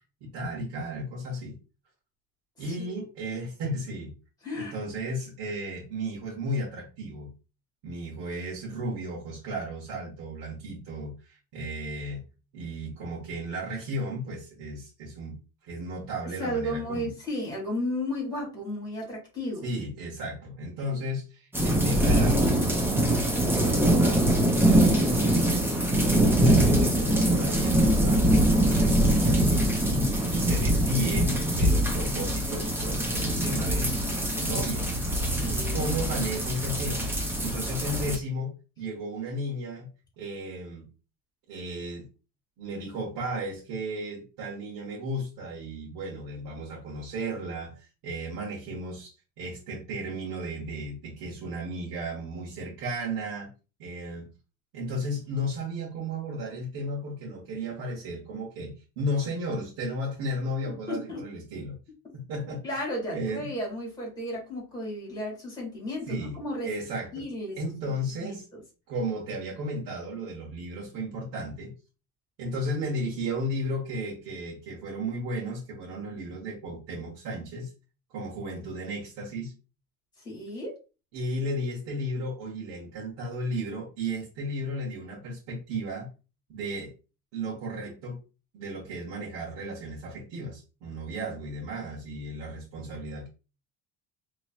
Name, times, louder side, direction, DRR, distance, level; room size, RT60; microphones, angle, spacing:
voice 1, 0.2-1.6 2.6-4.1 4.5-7.3 7.8-12.2 12.5-15.4 15.6-17.1 19.6-22.6 22.8-25.7 26.1-34.9 35.7-37.1 37.4-39.9 40.2-40.9 41.5-42.1 42.6-53.5 53.8-54.3 54.7-61.7 62.1-62.8 63.1-63.5 66.1-66.4 66.6-67.1 67.6-68.5 68.9-71.7 72.4-77.7 78.1-79.5 81.1-86.1 86.5-86.9 87.3-88.2 88.5-93.3, right 1 dB, 70° right, -4 dB, 1.4 m, -34 dB
voice 2, 2.6-3.0 4.4-4.7 16.4-19.6 35.3-35.9 60.6-61.2 62.6-66.7 67.1-67.6 68.2-68.6 80.2-80.8, left 1 dB, 10° left, -3 dB, 2.0 m, -34 dB
sound 1, 21.5-38.2, right 1 dB, 5° right, 0.4 m, -23 dB
4.0 x 3.1 x 2.3 m, 0.32 s
cardioid pair, 165°, 37 cm